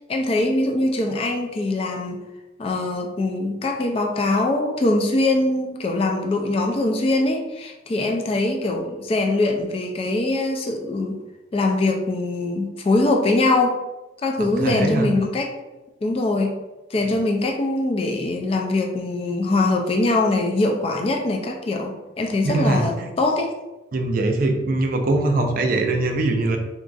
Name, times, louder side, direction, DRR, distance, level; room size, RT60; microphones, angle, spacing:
voice 1, 0.1-2.2 2.6-11.2 11.5-13.8 14.2-15.5 16.0-16.5 16.9-23.5, left 2 dB, 30° left, 3 dB, 0.3 m, -22 dB
voice 2, 14.5-15.1 22.4-23.1 23.9-26.6, right 2 dB, 50° right, 4 dB, 0.4 m, -22 dB
3.8 x 2.3 x 2.5 m, 1.1 s
head